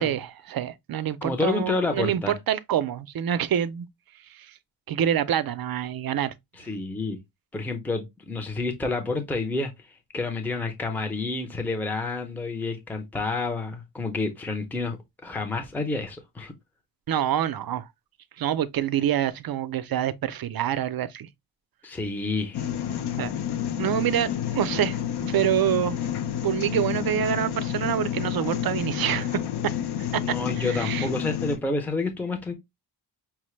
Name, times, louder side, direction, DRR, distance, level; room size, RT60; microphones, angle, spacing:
voice 1, 0.0-3.9 4.3-4.5 4.9-6.3 17.1-17.9 18.4-21.3 23.2-23.3 23.8-26.0 26.4-29.7 30.1-31.1, right 10 dB, 55° right, 0.5 m, -26 dB
voice 2, 1.2-2.3 6.6-7.2 7.5-9.7 10.1-15.0 15.2-16.5 21.8-22.7 30.2-32.5, left 3 dB, 5° left, 0.5 m, -29 dB
sound 1, 22.5-31.6, left 10 dB, 65° left, 0.6 m, -29 dB
5.7 x 2.1 x 3.1 m
wide cardioid pair, 175°, 44 cm